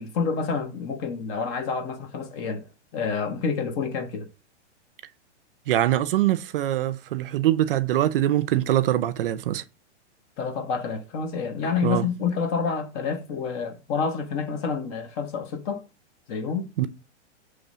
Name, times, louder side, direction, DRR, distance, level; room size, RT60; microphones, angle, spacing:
voice 1, 0.0-2.7 2.9-4.3 10.4-15.8 16.3-16.7, left 5 dB, 30° left, 0.8 m, -28 dB
voice 2, 5.7-9.6 11.8-12.1 16.8-16.9, right 13 dB, 50° right, 0.5 m, -23 dB
6.7 x 3.2 x 6.0 m
hypercardioid pair, 155°, 35 cm